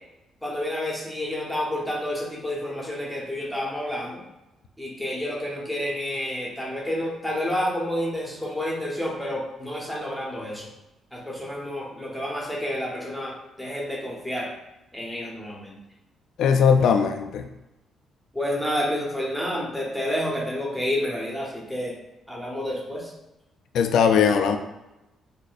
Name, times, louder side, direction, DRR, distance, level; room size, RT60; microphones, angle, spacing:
voice 1, 0.4-4.2 4.8-10.7 11.1-14.5 14.9-15.8 18.3-21.9 22.3-23.1, left 1 dB, ahead, -4 dB, 0.9 m, -29 dB
voice 2, 16.4-17.5 23.7-24.6, left 6 dB, 75° left, 6 dB, 0.3 m, -19 dB
4.1 x 2.2 x 2.5 m, 0.97 s
cardioid pair, 90°, 0 cm